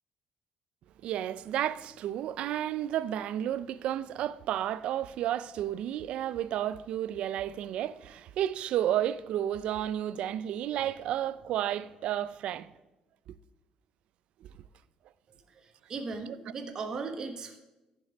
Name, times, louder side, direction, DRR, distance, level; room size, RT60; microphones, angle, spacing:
voice 1, 1.0-12.7 14.4-14.5 16.3-16.4, right 11 dB, 55° right, 0.4 m, -32 dB
voice 2, 15.9-17.6, right 4 dB, 30° right, 1.1 m, -37 dB
14.5 x 5.2 x 5.0 m
cardioid pair, 175°, 2 cm